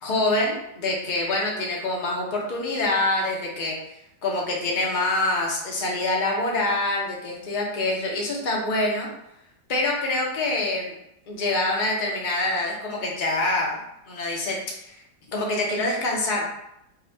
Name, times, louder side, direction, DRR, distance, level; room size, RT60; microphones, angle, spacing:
voice 1, 0.0-3.8 4.2-9.1 9.7-10.9 11.3-13.8 14.1-14.6 14.9-15.0 15.3-16.5, left 2 dB, 60° left, -2 dB, 0.5 m, -25 dB
5.2 x 2.2 x 2.7 m, 0.82 s
omnidirectional pair, 1.9 m